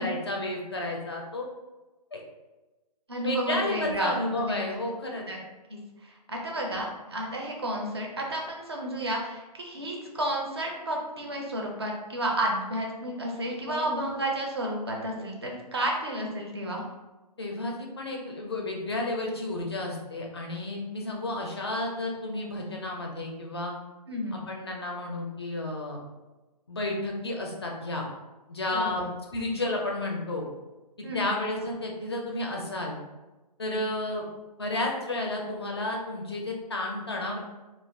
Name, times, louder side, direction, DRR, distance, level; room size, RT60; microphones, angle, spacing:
voice 1, 0.0-1.5 2.1-2.2 3.3-5.2 13.7-13.9 17.4-23.7 24.3-26.0 26.7-28.1 28.5-29.0 29.3-30.4 31.1-32.9 33.6-34.2 34.6-37.4, left 2 dB, 40° left, 0 dB, 0.4 m, -32 dB
voice 2, 3.1-4.6 5.3-5.4 5.7-16.8 24.1-24.4 28.7-29.1 31.0-31.3, right 1 dB, 40° right, 0 dB, 0.4 m, -31 dB
2.3 x 2.3 x 3.2 m, 1.1 s
hypercardioid pair, 180°, 21 cm